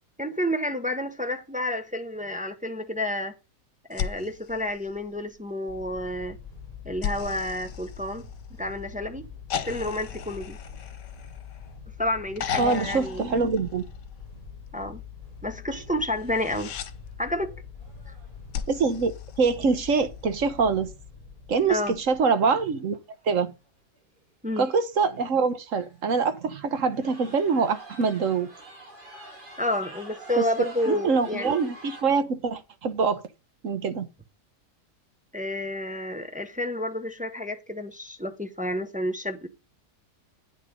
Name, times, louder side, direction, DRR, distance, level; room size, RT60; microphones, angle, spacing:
voice 1, 0.2-3.3 3.9-6.4 6.8-8.3 8.6-9.3 9.7-10.6 12.0-13.3 14.7-15.0 15.4-16.7 17.2-17.5 18.1-18.2 21.7-21.9 24.4-24.7 29.6-31.6 35.3-39.5, left 1 dB, 10° right, 0.6 m, -30 dB
sound 1, 3.9-5.5 7.0-8.7 9.5-11.8 12.4-14.2 16.2-16.9 18.5-20.0 21.5-21.6, left 8 dB, 90° left, 1.6 m, -36 dB
sound 2, 5.7-22.2, left 6 dB, 25° left, 1.8 m, -44 dB
voice 2, 12.6-13.8 18.7-20.9 21.5-23.0 23.2-23.5 24.6-28.5 30.4-30.5 30.9-33.2 33.6-34.1, right 5 dB, 55° right, 1.2 m, -24 dB
sound 3, 16.8-16.9 17.4-17.5 17.8-18.4 21.6-21.7 22.8-22.9 23.1-23.5 24.0-24.1 24.8-24.9 25.1-25.3 25.7-26.1 26.7-32.0, right 2 dB, 30° right, 2.5 m, -45 dB
9.3 x 6.4 x 5.2 m
omnidirectional pair, 1.8 m